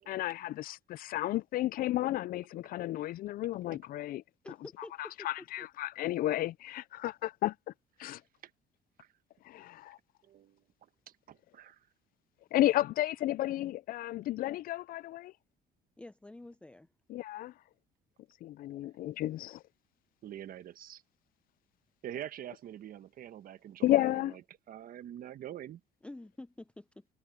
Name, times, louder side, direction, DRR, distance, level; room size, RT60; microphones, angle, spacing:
voice 1, 0.1-4.2 5.0-7.5 8.0-8.2 9.4-10.0 12.5-15.3 17.1-17.5 18.4-19.6 23.8-24.3, left 15 dB, 60° left, 0.4 m, -32 dB
voice 2, 4.4-5.3 6.0-6.1 16.0-16.9 26.0-27.1, left 2 dB, 5° left, 0.6 m, -48 dB
voice 3, 10.3-10.6 11.3-11.8 20.2-21.0 22.0-24.4 24.7-25.8, right 11 dB, 60° right, 1.2 m, -45 dB
cardioid pair, 110°, 17 cm